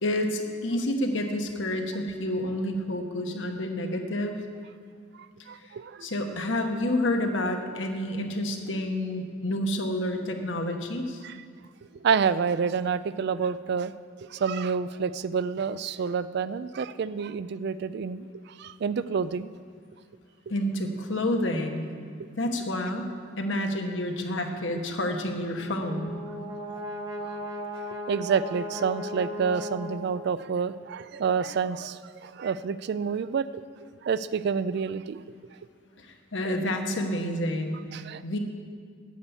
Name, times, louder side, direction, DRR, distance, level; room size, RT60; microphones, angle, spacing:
voice 1, 0.0-4.4 5.6-5.7 6.0-11.2 20.5-21.9 22.4-23.1 23.4-26.1 36.0-37.8 38.2-38.4, left 1 dB, 75° left, 4 dB, 1.1 m, -29 dB
voice 2, 5.5-6.1 11.2-11.4 11.9-13.9 14.2-19.5 27.9-35.2 37.9-38.2, right 6 dB, 60° right, 15 dB, 0.4 m, -28 dB
Brass instrument, 25.5-30.5, equal, 20° right, 0.9 m, -37 dB
9.3 x 8.1 x 7.1 m, 2.1 s
head